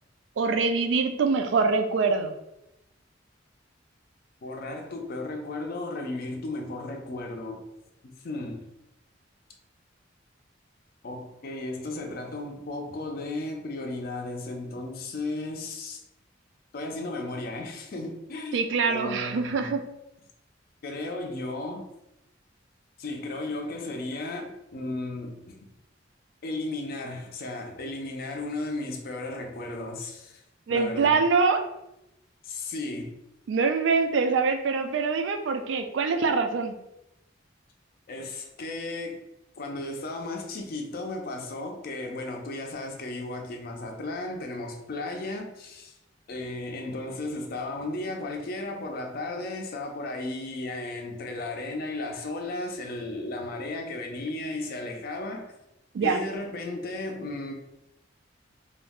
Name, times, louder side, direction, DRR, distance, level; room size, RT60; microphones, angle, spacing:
voice 1, 0.4-2.4 18.5-19.8 30.7-31.6 33.5-36.8 55.9-56.2, right 4 dB, 70° right, 0.3 m, -24 dB
voice 2, 4.4-7.6 8.0-8.7 11.0-16.0 16.7-19.7 20.8-21.9 23.0-25.7 26.4-30.4 30.7-31.2 32.4-33.2 38.1-39.2 39.6-45.9 46.3-55.5 56.0-57.5, left 2 dB, 50° left, 0.4 m, -35 dB
2.4 x 2.0 x 3.5 m
head